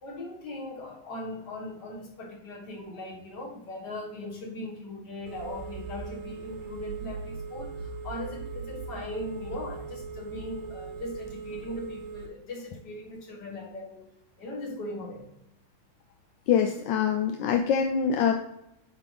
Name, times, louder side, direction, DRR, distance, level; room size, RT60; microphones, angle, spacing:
voice 1, 0.0-14.1 14.4-15.3, left 1 dB, 55° left, -2 dB, 2.0 m, -39 dB
Telephone, 5.3-12.3, right 4 dB, 85° right, 1.8 m, -39 dB
voice 2, 16.5-18.3, left 7 dB, 75° left, 3 dB, 1.2 m, -24 dB
9.7 x 3.8 x 3.2 m, 0.85 s
omnidirectional pair, 2.3 m